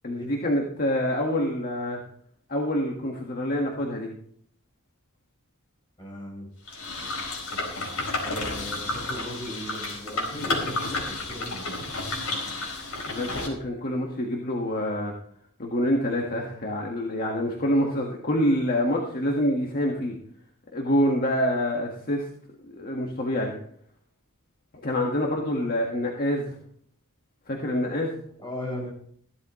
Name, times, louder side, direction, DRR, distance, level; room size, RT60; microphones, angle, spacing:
voice 1, 0.0-2.0 2.5-4.1 13.1-15.1 15.6-20.1 20.7-22.3 22.7-23.5 24.8-26.6 27.5-28.2, equal, 45° left, 0 dB, 1.7 m, -26 dB
voice 2, 6.0-6.5 8.2-11.6 28.4-28.9, equal, 20° left, -2 dB, 6.3 m, -37 dB
sound 1, 6.7-13.5, left 2 dB, 70° left, 4.3 m, -31 dB
16.0 x 12.0 x 3.2 m, 0.63 s
head